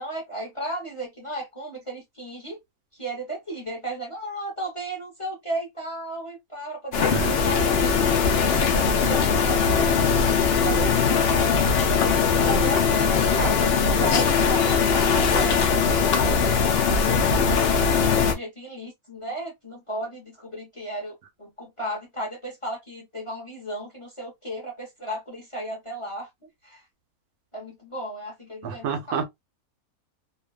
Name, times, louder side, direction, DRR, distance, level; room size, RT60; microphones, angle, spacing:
voice 1, 0.0-2.6 2.9-8.1 8.5-10.3 10.6-11.6 12.3-15.6 16.0-16.6 17.3-26.3 26.6-26.8 27.5-29.2, right 1 dB, 25° left, 0.8 m, -34 dB
sound 1, 6.9-18.3, left 6 dB, 75° left, 0.5 m, -21 dB
voice 2, 28.6-29.2, right 7 dB, 80° right, 1.1 m, -28 dB
2.6 x 2.3 x 2.3 m
omnidirectional pair, 1.6 m